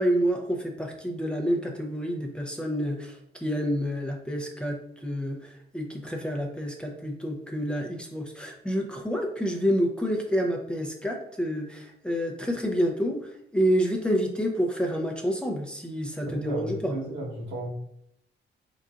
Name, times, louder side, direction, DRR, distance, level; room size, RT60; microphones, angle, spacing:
voice 1, 0.0-16.9, equal, 5° left, 0 dB, 0.7 m, -28 dB
voice 2, 16.3-17.7, right 1 dB, 70° right, -1 dB, 1.3 m, -34 dB
4.2 x 3.9 x 2.5 m, 0.73 s
cardioid pair, 90°, 20 cm